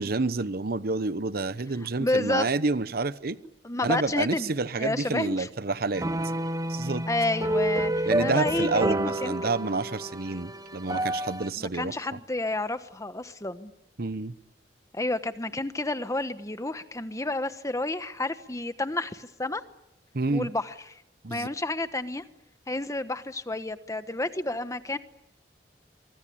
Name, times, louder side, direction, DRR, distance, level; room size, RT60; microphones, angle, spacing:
voice 1, 0.0-3.4 3.8-6.1 6.7-7.0 8.1-11.9 14.0-14.3 20.1-20.5 21.2-21.5, right 3 dB, 60° right, 15 dB, 1.0 m, -29 dB
voice 2, 2.0-2.5 3.6-4.5 4.8-5.5 7.1-9.5 11.6-13.7 14.9-19.6 20.3-20.7 21.3-22.2 22.7-25.0, left 2 dB, 20° left, 11 dB, 1.2 m, -30 dB
sound 1, 5.9-11.5, right 1 dB, 20° right, 0.9 m, -29 dB
24.5 x 24.0 x 8.6 m, 0.88 s
head